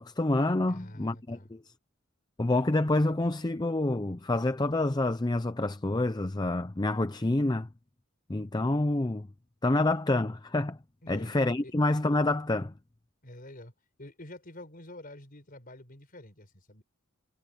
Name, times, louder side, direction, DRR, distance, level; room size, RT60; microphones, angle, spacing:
voice 1, 0.0-1.6 2.4-7.7 8.3-9.3 9.6-10.8 11.1-12.7, left 2 dB, 20° left, 0.6 m, -27 dB
voice 2, 0.7-1.5 11.0-11.3 11.6-11.7 13.2-13.7 14.0-16.8, left 1 dB, 45° left, 5.2 m, -47 dB
head